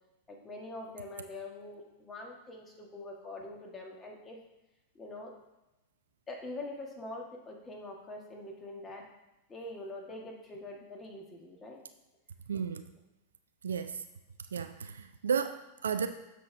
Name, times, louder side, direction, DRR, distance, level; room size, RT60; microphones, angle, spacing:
voice 1, 0.3-4.4 4.9-5.3 6.3-9.0 9.5-11.8, left 2 dB, 20° left, 0 dB, 1.6 m, -44 dB
voice 2, 12.5-12.9 13.6-14.0 14.5-16.1, right 6 dB, 70° right, 9 dB, 0.4 m, -33 dB
7.4 x 6.0 x 3.4 m, 1.0 s
figure-of-eight pair, 90°, 0 cm